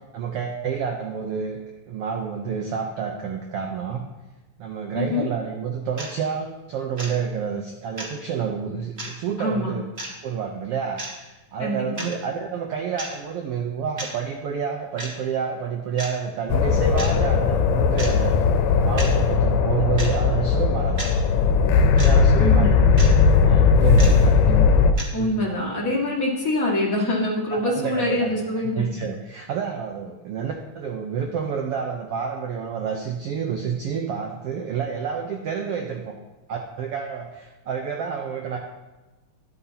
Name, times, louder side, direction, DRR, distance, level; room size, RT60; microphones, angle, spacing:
voice 1, 0.1-1.6 1.9-4.0 4.6-9.8 10.2-18.4 18.8-21.1 21.8-24.4 25.2-25.4 27.5-28.4 28.7-36.1 36.5-38.6, right 6 dB, 85° right, 2 dB, 1.3 m, -29 dB
voice 2, 4.9-5.3 9.4-9.7 11.6-12.1 22.4-22.9 24.5-24.6 25.1-28.9, left 1 dB, 35° left, -3 dB, 1.7 m, -25 dB
sound 1, 6.0-6.1 7.0-7.1 8.0-8.1 9.0-9.1 10.0-10.1 11.0-11.1 12.0-12.1 13.0-13.1 14.0-14.1 15.0-15.1 16.0-16.1 17.0-17.1 18.0-18.1 19.0-19.1 20.0-20.1 21.0-21.1 22.0-22.1 23.0-23.1 24.0-24.2 25.0-25.1, right 1 dB, 35° right, 0.9 m, -32 dB
sound 2, 16.5-24.9, left 5 dB, 90° left, 2.3 m, -18 dB
12.5 x 11.0 x 2.8 m, 1.1 s
omnidirectional pair, 3.7 m